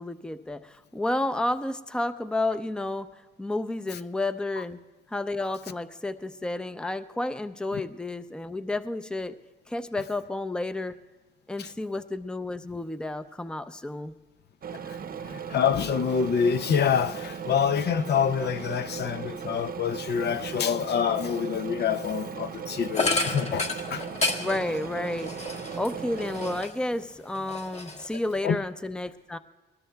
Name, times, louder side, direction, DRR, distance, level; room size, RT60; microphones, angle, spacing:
voice 1, 0.0-3.1 3.4-4.8 5.1-9.4 9.7-11.0 11.5-14.1 24.4-29.4, left 2 dB, 5° left, 0.5 m, -31 dB
sound 1, 14.6-26.6, right 7 dB, 45° right, 0.8 m, -37 dB
voice 2, 15.2-24.1 28.4-28.6, left 7 dB, 55° left, 0.6 m, -26 dB
sound 2, 22.9-26.9 27.3-28.5, left 3 dB, 35° left, 1.7 m, -31 dB
22.0 x 19.5 x 2.3 m
cardioid pair, 90°, 20 cm